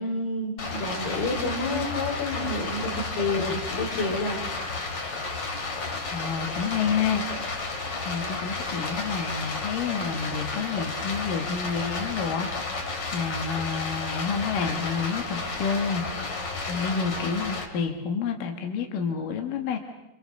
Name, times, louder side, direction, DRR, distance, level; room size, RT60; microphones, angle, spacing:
voice 1, 0.0-4.4, left 2 dB, 85° left, 1 dB, 6.1 m, -29 dB
Stream, 0.6-17.6, left 3 dB, 40° left, 3.6 m, -32 dB
voice 2, 6.0-7.6 8.0-19.8, left 6 dB, 65° left, 4 dB, 3.3 m, -29 dB
27.0 x 27.0 x 6.7 m, 0.93 s
omnidirectional pair, 4.4 m